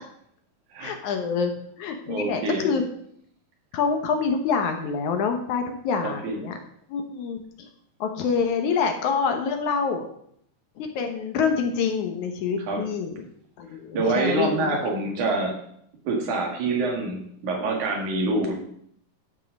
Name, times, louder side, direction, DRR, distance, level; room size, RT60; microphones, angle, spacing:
voice 1, 0.8-1.5 1.8-2.8 3.7-6.6 6.9-7.7 8.0-10.1 10.8-13.1 13.6-14.8, left 5 dB, 70° left, 5 dB, 2.1 m, -26 dB
voice 2, 2.1-2.7 6.2-6.4 12.6-12.8 13.9-15.6 16.0-18.6, right 3 dB, 60° right, 1 dB, 3.2 m, -26 dB
12.0 x 5.5 x 5.2 m, 0.69 s
omnidirectional pair, 4.1 m